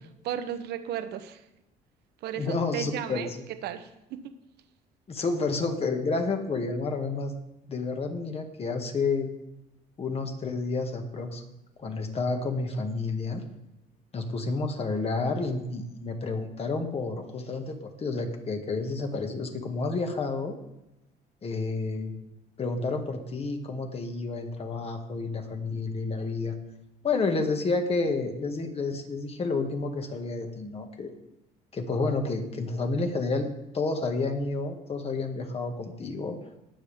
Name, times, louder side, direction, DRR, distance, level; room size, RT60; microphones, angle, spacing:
voice 1, 0.2-1.4 2.2-3.3 3.6-4.3, right 10 dB, 75° right, 10 dB, 1.0 m, -34 dB
voice 2, 2.4-3.4 5.1-7.3 7.7-9.3 10.0-11.4 11.8-13.4 14.1-20.5 21.4-22.1 22.6-26.6 27.0-31.1 31.7-33.5 33.7-36.4, left 3 dB, 35° left, 4 dB, 1.9 m, -30 dB
20.0 x 7.3 x 3.6 m, 0.94 s
cardioid pair, 110°, 17 cm